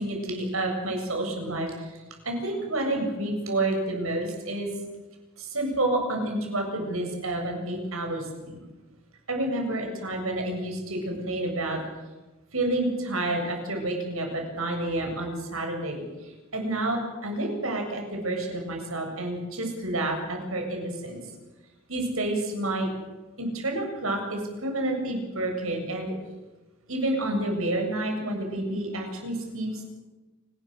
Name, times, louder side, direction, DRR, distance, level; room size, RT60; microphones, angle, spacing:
voice 1, 0.0-4.7 5.4-8.6 9.3-11.8 12.5-21.2 21.9-22.9 23.4-26.2 26.9-29.9, right 1 dB, 75° right, 2 dB, 7.6 m, -29 dB
29.0 x 20.5 x 6.7 m, 1.1 s
head